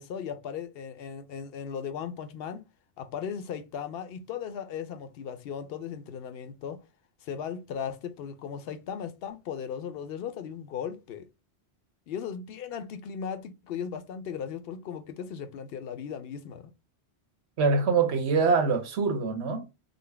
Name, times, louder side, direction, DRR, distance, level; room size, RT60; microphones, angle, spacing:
voice 1, 0.0-2.7 3.0-6.8 7.2-11.3 12.1-16.7, left 7 dB, 65° left, 0.8 m, -37 dB
voice 2, 17.6-19.7, right 4 dB, 75° right, 1.1 m, -24 dB
3.9 x 2.0 x 3.3 m
omnidirectional pair, 1.1 m